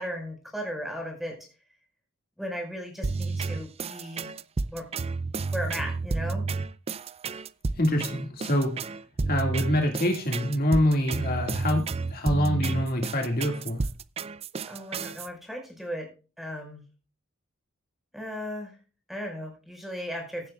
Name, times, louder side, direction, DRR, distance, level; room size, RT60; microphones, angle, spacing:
voice 1, 0.0-1.4 2.4-4.3 4.7-4.9 5.5-6.4 14.7-16.1 16.4-16.8 18.1-18.7 19.1-20.5, equal, ahead, 2 dB, 5.1 m, -36 dB
sound 1, 3.0-15.3, right 4 dB, 30° right, 0.4 m, -31 dB
voice 2, 7.8-8.8 9.3-11.8 12.1-13.8, equal, 45° left, 2 dB, 2.1 m, -25 dB
16.0 x 11.0 x 2.4 m, 0.33 s
head